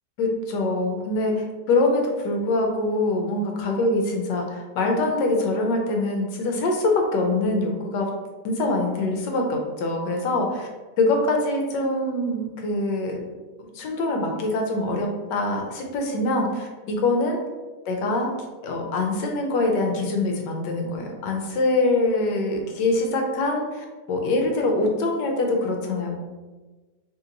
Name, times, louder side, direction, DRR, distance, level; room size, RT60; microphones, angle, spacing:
voice 1, 0.2-8.1 8.4-10.7 11.0-13.2 13.6-17.4 17.9-18.3 18.6-26.2, left 2 dB, 80° left, 1 dB, 1.3 m, -24 dB
3.1 x 2.8 x 3.8 m, 1.3 s
omnidirectional pair, 1.9 m